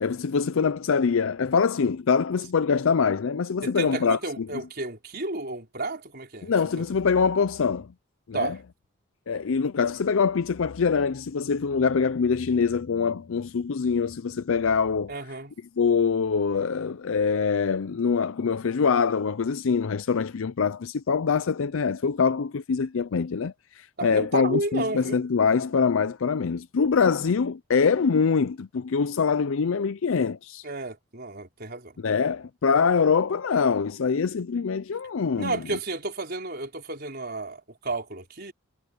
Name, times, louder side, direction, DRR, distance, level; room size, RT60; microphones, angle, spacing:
voice 1, 0.0-4.5 6.4-7.9 8.3-8.5 9.3-15.1 15.8-30.6 32.0-35.6, left 5 dB, 70° left, 0.5 m, -24 dB
voice 2, 3.6-6.8 8.3-8.6 15.1-15.5 24.0-25.2 30.6-32.0 35.4-38.5, right 2 dB, 45° right, 5.0 m, -32 dB
head